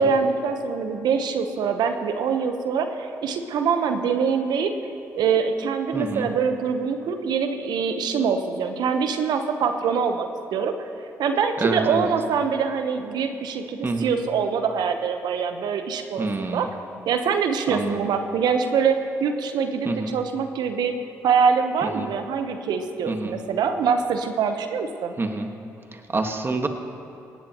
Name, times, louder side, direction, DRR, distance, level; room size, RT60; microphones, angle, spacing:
voice 1, 0.0-4.7 5.1-10.7 11.2-16.7 17.1-20.9 21.2-25.1, right 6 dB, 70° right, 7 dB, 1.1 m, -24 dB
voice 2, 5.9-6.3 11.6-12.1 13.8-14.1 16.2-16.7 17.7-18.1 19.8-20.2 21.8-22.1 23.1-23.4 25.2-25.5 25.9-26.7, right 3 dB, 30° right, 5 dB, 1.7 m, -27 dB
18.5 x 17.5 x 3.1 m, 2.8 s
hypercardioid pair, 50°, 7 cm